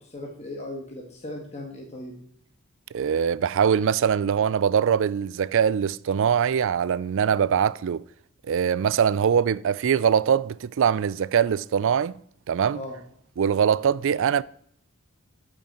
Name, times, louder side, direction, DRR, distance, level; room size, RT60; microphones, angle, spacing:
voice 1, 0.1-2.1 12.7-13.0, left 1 dB, 30° left, 1.8 m, -37 dB
voice 2, 2.9-8.0 8.5-12.1 12.5-12.8 13.4-14.4, right 7 dB, 65° right, 0.4 m, -22 dB
12.5 x 5.9 x 4.4 m
head